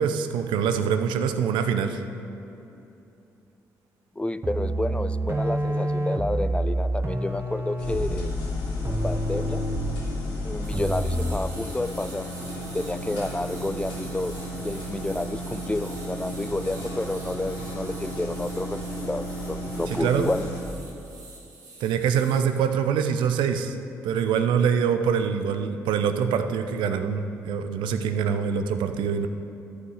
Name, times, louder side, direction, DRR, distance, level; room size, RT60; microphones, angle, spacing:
voice 1, 0.0-2.0 19.9-20.3 21.8-23.8 24.0-29.3, right 7 dB, 65° right, 8 dB, 0.7 m, -24 dB
voice 2, 4.2-8.3 8.9-9.7 10.4-12.3 12.7-14.4 14.6-18.8 19.1-20.5, left 2 dB, 15° left, 13 dB, 0.4 m, -30 dB
sound 1, 4.4-11.6, right 1 dB, 30° right, 1.2 m, -28 dB
sound 2, 7.8-20.6, left 1 dB, 70° left, 2.4 m, -33 dB
sound 3, 10.6-22.6, right 3 dB, 90° right, 1.5 m, -46 dB
14.0 x 8.3 x 4.8 m, 2.8 s
figure-of-eight pair, 40°, 9 cm